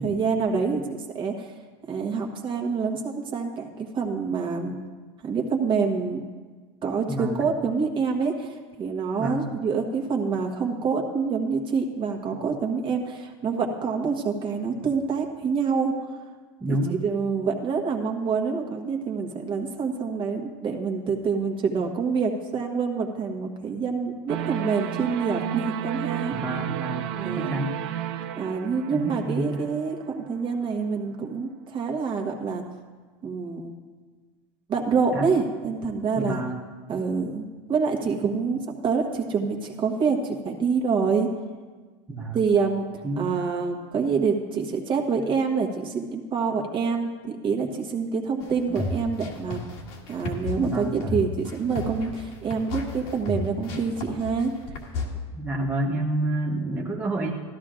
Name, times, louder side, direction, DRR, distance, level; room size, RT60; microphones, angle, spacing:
voice 1, 0.0-1.5 1.9-4.7 5.2-6.2 6.8-15.9 16.7-26.3 26.6-26.8 27.2-27.6 28.4-32.6 33.2-33.7 34.7-36.4 36.9-41.3 42.3-42.9 43.2-49.6 50.1-54.5, right 5 dB, 35° right, 2 dB, 1.3 m, -26 dB
voice 2, 7.1-7.5 9.2-9.4 16.6-17.0 26.3-28.0 28.9-29.6 35.1-35.2 36.2-36.6 42.1-42.4 43.0-43.4 50.6-51.3 55.3-57.3, right 1 dB, 10° right, -2 dB, 1.0 m, -29 dB
sound 1, 24.3-30.3, right 11 dB, 65° right, 0.5 m, -32 dB
sound 2, 48.4-55.1, left 2 dB, 70° left, 1.8 m, -33 dB
14.0 x 12.0 x 2.5 m, 1.4 s
supercardioid pair, 120°, 15 cm